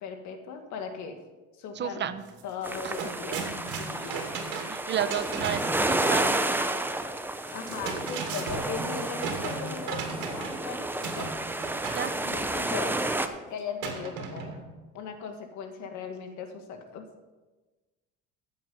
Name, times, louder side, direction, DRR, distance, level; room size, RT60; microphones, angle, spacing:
voice 1, 0.0-1.2 1.6-2.1 2.4-3.4 3.8-4.2 7.5-11.3 12.2-13.0 13.5-14.6 14.9-17.0, left 5 dB, 70° left, 5 dB, 2.0 m, -38 dB
voice 2, 1.7-2.2 2.8-2.9 4.0-4.1 4.7-6.7 11.9-12.2, right 9 dB, 35° right, 12 dB, 0.9 m, -32 dB
sound 1, 2.3-2.4 2.7-5.8 7.5-10.7 11.0-12.1 13.8-14.7, right 5 dB, 75° right, 2.7 m, -36 dB
sound 2, 2.6-13.3, right 2 dB, 5° right, 0.8 m, -31 dB
14.0 x 7.9 x 5.5 m, 1.2 s
cardioid pair, 115°, 30 cm